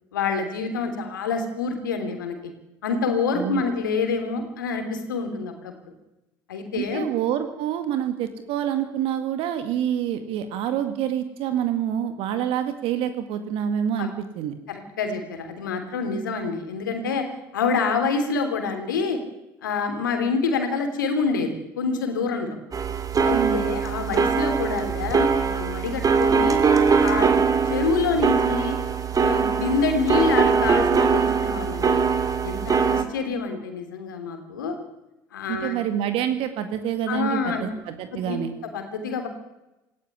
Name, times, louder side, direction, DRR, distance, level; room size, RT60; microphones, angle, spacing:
voice 1, 0.1-2.5 2.8-5.9 6.5-7.1 14.0-14.1 14.7-17.2 17.5-19.2 19.6-22.6 23.2-26.6 27.0-27.3 27.6-28.8 29.2-32.0 32.4-34.7 35.3-35.7 37.1-37.7 38.1-38.4 38.7-39.3, left 4 dB, 85° left, 6 dB, 3.1 m, -27 dB
voice 2, 6.7-14.5 23.3-23.7 35.5-38.5, right 10 dB, 65° right, 9 dB, 2.0 m, -27 dB
sound 1, 22.7-33.0, right 5 dB, 35° right, 2.3 m, -22 dB
18.5 x 15.0 x 9.8 m, 0.94 s
hypercardioid pair, 60°, 10 cm